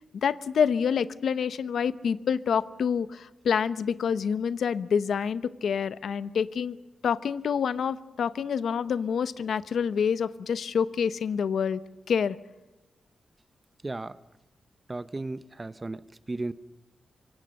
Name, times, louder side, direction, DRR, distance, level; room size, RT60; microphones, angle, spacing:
voice 1, 0.0-6.8 7.0-11.8 12.1-12.4, left 7 dB, 80° left, 14 dB, 0.8 m, -27 dB
voice 2, 13.8-14.2 14.9-16.5, right 2 dB, 25° right, 15 dB, 0.7 m, -35 dB
25.5 x 24.0 x 6.5 m, 1.1 s
wide cardioid pair, 130°, 0 cm